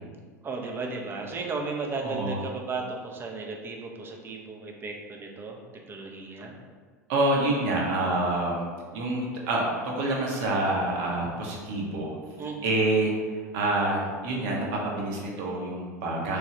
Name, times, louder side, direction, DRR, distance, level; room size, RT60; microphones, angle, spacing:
voice 1, 0.4-5.6 5.9-6.5 12.4-12.8, right 3 dB, 25° right, 1 dB, 0.5 m, -35 dB
voice 2, 2.0-2.4 7.1-8.6 8.9-12.2 12.6-16.4, right 2 dB, 55° right, -2 dB, 0.8 m, -27 dB
3.2 x 2.3 x 2.8 m, 1.5 s
figure-of-eight pair, 80°, 9 cm